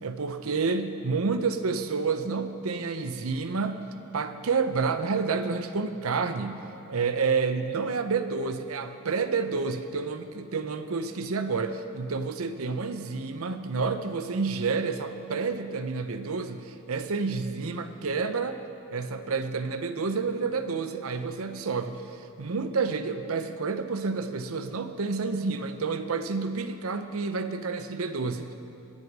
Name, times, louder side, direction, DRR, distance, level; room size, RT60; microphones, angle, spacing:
voice 1, 0.0-3.8 4.1-6.6 6.9-18.6 18.9-28.5, right 4 dB, 75° right, 9 dB, 0.7 m, -29 dB
22.5 x 8.0 x 4.8 m, 2.7 s
head